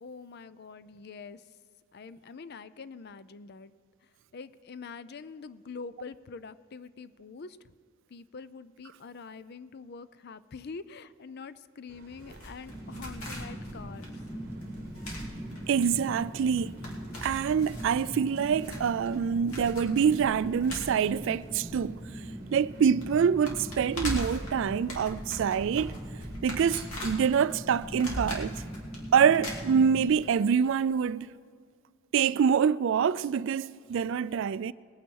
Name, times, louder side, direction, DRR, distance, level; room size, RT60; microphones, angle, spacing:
voice 1, 0.0-1.5 1.9-3.7 4.0-7.6 8.1-14.2 19.3-19.4, left 5 dB, 50° left, 0.4 m, -45 dB
sound 1, 11.9-26.4, right 1 dB, 45° right, 1.2 m, -53 dB
sound 2, 12.2-22.3 22.6-22.7 23.0-30.3 30.5-30.6, equal, 80° left, 2.7 m, -41 dB
Fire, 12.7-30.1, equal, 15° right, 2.0 m, -41 dB
voice 2, 15.7-16.7 17.2-22.0 22.5-25.9 26.4-28.6 29.1-31.3 32.1-34.7, right 7 dB, 60° right, 0.3 m, -26 dB
20.0 x 9.1 x 4.6 m
head